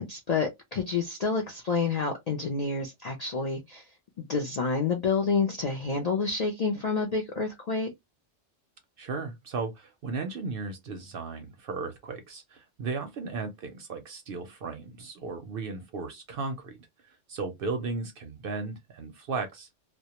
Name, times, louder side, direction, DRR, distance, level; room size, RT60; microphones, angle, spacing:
voice 1, 0.0-3.8 4.3-7.9, left 4 dB, 60° left, 0.4 m, -28 dB
voice 2, 9.0-16.8 17.3-19.7, right 4 dB, 60° right, 0.6 m, -35 dB
2.1 x 2.1 x 2.8 m
omnidirectional pair, 1.2 m